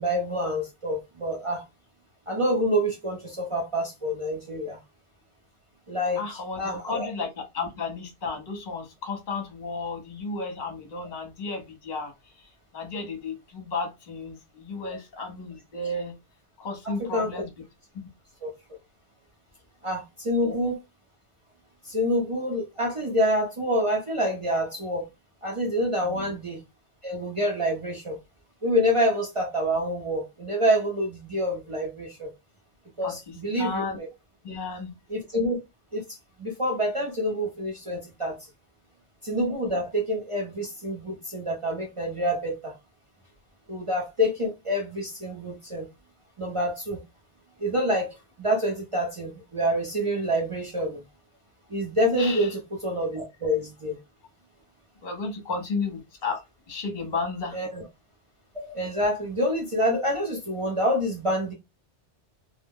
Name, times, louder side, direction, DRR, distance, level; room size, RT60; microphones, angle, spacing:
voice 1, 0.0-1.6 2.3-4.8 5.9-6.2 6.6-7.1 16.8-17.3 18.4-18.5 19.8-20.7 21.9-25.0 25.4-26.6 27.0-28.2 28.6-32.3 33.0-34.1 35.1-35.6 35.9-36.0 36.4-38.4 39.2-42.7 43.7-45.9 46.4-47.0 47.6-51.0 51.7-53.9 57.5-57.8 58.5-61.5, equal, 35° right, 0.6 m, -27 dB
voice 2, 6.2-12.1 12.4-12.5 12.7-16.1 16.6-17.5 20.4-20.6 26.0-26.3 33.0-34.0 34.4-35.0 52.2-52.5 55.0-57.6, left 3 dB, 45° left, 0.9 m, -33 dB
2.3 x 2.1 x 3.5 m
omnidirectional pair, 1.2 m